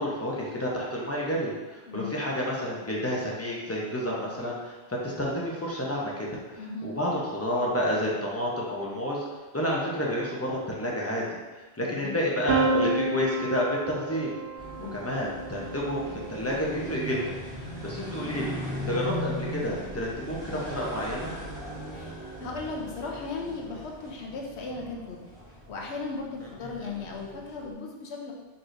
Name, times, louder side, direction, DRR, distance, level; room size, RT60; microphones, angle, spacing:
voice 1, 0.0-9.2 9.5-11.2 11.5-14.3 14.9-17.2 17.6-18.6 18.9-21.3 26.7-26.8, equal, 15° left, -4 dB, 0.7 m, -30 dB
voice 2, 1.9-2.2 6.6-7.0 11.8-12.3 14.8-15.0 21.9-25.2 25.7-28.3, left 3 dB, 85° left, 0 dB, 1.0 m, -37 dB
Piano, 12.5-18.3, right 3 dB, 80° right, 0.9 m, -31 dB
sound 1, 14.6-27.7, equal, 45° right, 1.8 m, -39 dB
4.7 x 4.1 x 2.6 m, 1.2 s
omnidirectional pair, 1.1 m